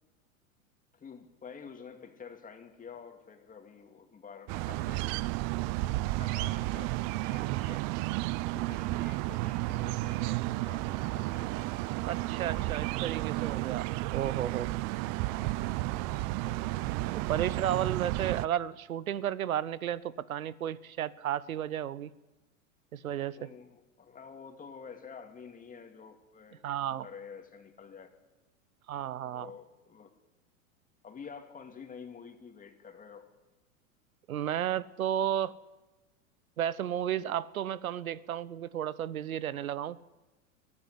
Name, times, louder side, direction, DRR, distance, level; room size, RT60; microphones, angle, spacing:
voice 1, 0.9-7.9 8.5-11.5 15.3-16.0 16.4-17.4 23.4-28.1 29.2-30.1 31.0-33.3, left 6 dB, 20° left, 2.7 m, -49 dB
sound 1, 4.5-18.5, right 19 dB, 40° right, 0.6 m, -32 dB
voice 2, 12.0-14.7 17.1-22.1 22.9-23.5 26.6-27.1 28.9-29.5 34.3-35.6 36.6-40.0, right 10 dB, 90° right, 0.8 m, -33 dB
21.5 x 13.0 x 9.7 m
hypercardioid pair, 110°, 41 cm